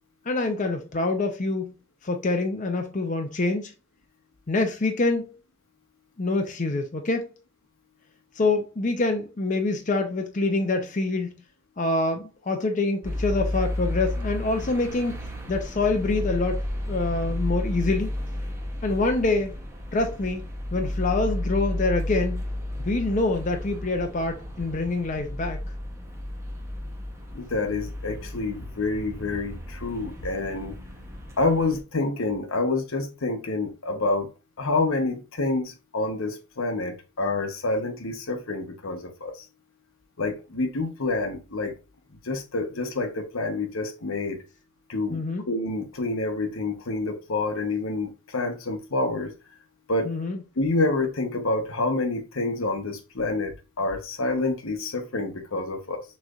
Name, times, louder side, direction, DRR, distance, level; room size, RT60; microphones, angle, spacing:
voice 1, 0.3-1.7 2.0-3.7 4.5-5.4 6.2-7.3 8.4-11.4 11.8-15.2 15.5-18.1 18.8-19.6 19.9-20.4 20.7-22.5 22.8-25.6 45.1-45.4 50.1-50.4, left 2 dB, 40° left, 0.6 m, -26 dB
sound 1, 13.0-31.8, left 1 dB, 15° right, 0.9 m, -32 dB
voice 2, 27.3-30.8 31.4-34.3 34.6-39.4 40.2-41.7 42.2-44.4 44.9-49.3 49.9-50.2 50.6-56.0, left 3 dB, 80° left, 1.0 m, -28 dB
6.3 x 3.2 x 2.4 m
head